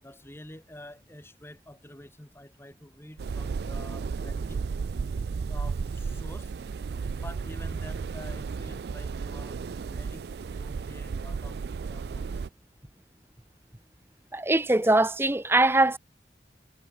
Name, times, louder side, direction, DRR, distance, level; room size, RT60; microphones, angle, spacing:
voice 1, 0.0-4.6 5.5-6.5 7.1-10.3 10.5-11.6 11.9-12.4, left 1 dB, 15° left, 2.9 m, -47 dB
sound 1, 3.2-12.5, right 5 dB, 65° right, 0.4 m, -33 dB
voice 2, 14.3-16.0, right 2 dB, 15° right, 0.8 m, -22 dB
head